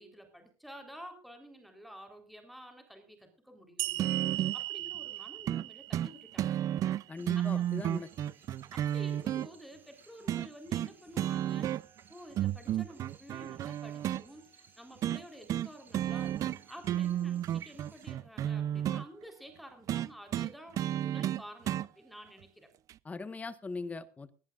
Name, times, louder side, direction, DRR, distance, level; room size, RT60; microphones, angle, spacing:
voice 1, 0.0-6.6 7.3-7.6 8.7-11.7 12.1-22.7, equal, ahead, 4 dB, 4.0 m, -51 dB
sound 1, 3.8-7.2, right 16 dB, 70° right, 1.3 m, -38 dB
sound 2, 4.0-4.6 5.5-5.6 5.9-6.1 6.4-9.5 10.3-10.9 11.2-12.0 12.4-14.2 15.0-15.2 15.5-15.7 15.9-16.6 16.8-19.0 19.9-21.9 22.9-23.0, right 11 dB, 45° right, 0.5 m, -32 dB
voice 2, 7.1-8.1 23.0-24.3, left 3 dB, 20° left, 12 dB, 1.4 m, -40 dB
sound 3, 7.2-18.1, right 4 dB, 25° right, 6.1 m, -63 dB
19.0 x 17.0 x 2.5 m, 0.39 s
supercardioid pair, 110°, 8 cm